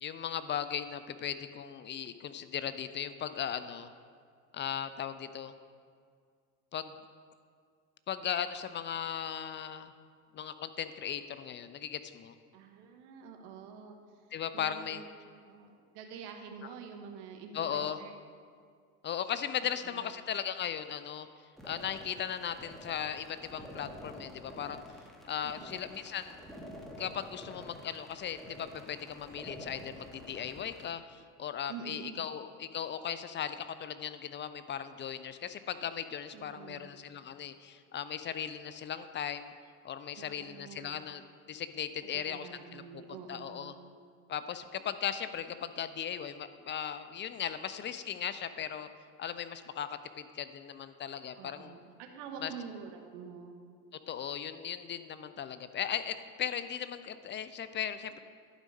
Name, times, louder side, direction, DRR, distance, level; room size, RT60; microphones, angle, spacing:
voice 1, 0.0-3.9 4.5-5.5 6.7-6.9 8.1-9.9 10.3-12.3 14.3-15.0 17.5-18.0 19.0-21.3 21.6-24.8 25.3-26.4 27.0-39.5 39.8-41.2 41.5-43.0 43.3-43.7 44.3-48.9 49.2-51.8 52.4-52.5 54.1-58.2, left 9 dB, 25° left, 12 dB, 0.4 m, -37 dB
voice 2, 12.5-14.0 14.5-15.1 15.4-18.1 19.8-20.1 25.4-25.8 31.7-32.3 36.3-36.9 40.2-41.0 42.0-43.8 51.4-53.6, right 6 dB, 65° right, 4 dB, 1.2 m, -47 dB
sound 1, 21.6-30.9, equal, ahead, 1.5 m, -49 dB
11.5 x 5.0 x 5.2 m, 2.1 s
hypercardioid pair, 70°, 44 cm